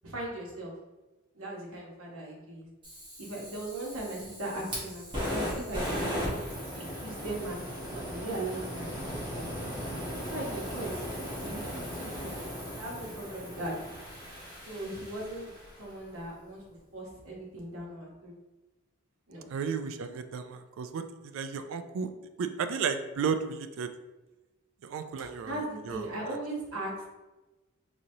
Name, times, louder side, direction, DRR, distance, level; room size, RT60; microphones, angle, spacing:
voice 1, 0.0-0.7 1.3-2.7 3.2-6.2 6.8-9.2 9.9-11.0 11.4-12.3 12.8-13.7 14.7-15.5 15.8-16.6 16.9-18.4 19.3-19.5 25.4-27.0, right 1 dB, 85° right, -3 dB, 1.0 m, -38 dB
Fire, 2.8-15.9, equal, 20° right, 1.3 m, -37 dB
voice 2, 19.5-22.1 22.4-23.9 24.8-25.6 25.9-26.0, right 6 dB, 70° right, 9 dB, 0.3 m, -33 dB
3.8 x 3.0 x 2.7 m, 1.1 s
head